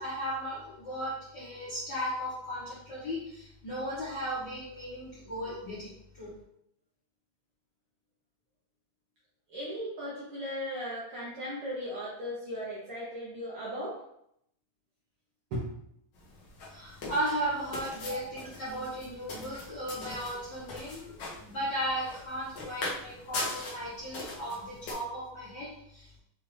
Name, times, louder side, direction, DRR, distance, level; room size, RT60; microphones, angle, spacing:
voice 1, 0.0-6.3 16.7-26.2, equal, 55° left, -10 dB, 1.2 m, -36 dB
voice 2, 9.5-14.0 15.5-15.7 18.0-18.2 23.0-23.1 24.1-24.2, equal, 70° right, -6 dB, 1.3 m, -37 dB
sound 1, 16.1-24.9, left 2 dB, 90° left, 0.9 m, -41 dB
6.5 x 2.4 x 3.2 m, 0.75 s
omnidirectional pair, 3.7 m